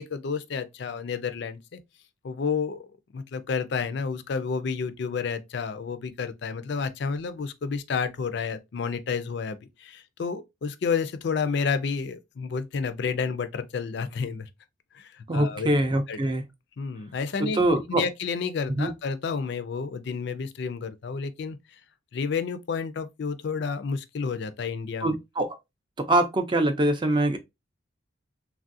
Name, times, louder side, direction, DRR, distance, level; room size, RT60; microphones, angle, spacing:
voice 1, 0.0-1.8 2.2-2.9 3.1-14.5 14.9-15.7 16.1-16.2 16.8-17.6 17.9-21.6 22.1-25.1, left 5 dB, 60° left, 0.4 m, -30 dB
voice 2, 15.3-16.4 17.4-18.0 18.8-18.9 25.0-25.6 26.0-27.4, right 1 dB, 25° right, 0.4 m, -24 dB
3.3 x 2.4 x 2.5 m
head